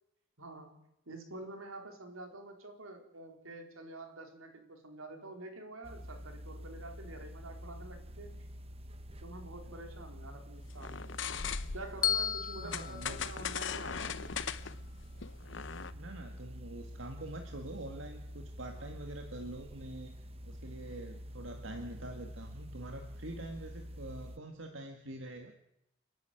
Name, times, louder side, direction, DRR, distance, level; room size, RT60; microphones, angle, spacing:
voice 1, 0.4-8.5 9.2-11.1 11.7-14.4, right 2 dB, 90° right, 4 dB, 4.4 m, -48 dB
sound 1, 5.8-24.4, equal, 30° right, 1.1 m, -47 dB
sound 2, 10.8-12.0 12.7-15.9, left 7 dB, 60° left, 0.9 m, -39 dB
Bell, 12.0-14.2, left 9 dB, 40° left, 1.4 m, -35 dB
voice 2, 12.6-13.3 15.9-20.1 20.4-25.5, right 1 dB, 70° right, 4 dB, 2.0 m, -45 dB
29.5 x 10.5 x 9.2 m, 0.83 s
head